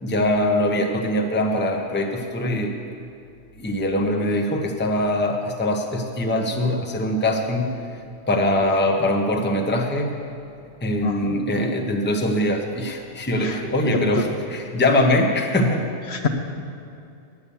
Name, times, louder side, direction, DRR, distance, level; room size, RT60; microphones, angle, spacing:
voice 1, 0.0-2.7 3.6-7.7 8.3-10.2 10.8-15.9, left 1 dB, 10° left, 2 dB, 0.8 m, -22 dB
voice 2, 11.0-11.3 13.4-14.3 14.9-15.1 16.0-16.3, left 3 dB, 60° left, 4 dB, 1.1 m, -27 dB
10.0 x 9.5 x 7.0 m, 2.6 s
omnidirectional pair, 1.3 m